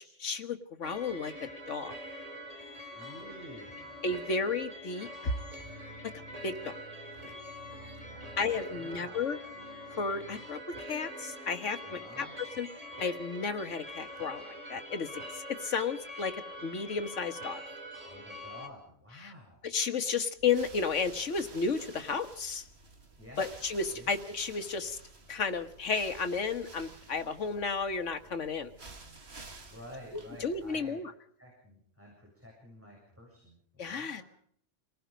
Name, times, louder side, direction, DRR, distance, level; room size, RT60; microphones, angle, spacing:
voice 1, 0.0-1.3 1.7-1.9 4.0-5.3 6.4-6.8 8.4-9.4 10.0-12.3 12.6-12.7 13.0-16.4 16.6-17.6 19.2-19.3 19.6-22.7 23.4-25.0 25.3-28.7 30.4-31.1 33.8-34.2, left 5 dB, 85° left, 8 dB, 1.8 m, -33 dB
sound 1, 0.8-18.7, equal, 30° right, 2.6 m, -44 dB
voice 2, 2.9-4.0 7.6-9.4 11.8-12.4 18.1-19.7 23.2-23.4 23.9-24.1 29.7-31.0 31.4-34.2, left 1 dB, 10° right, -2 dB, 7.2 m, -51 dB
sound 2, 20.3-31.0, right 3 dB, 60° right, 2.3 m, -52 dB
28.0 x 19.0 x 5.2 m, 0.64 s
omnidirectional pair, 1.2 m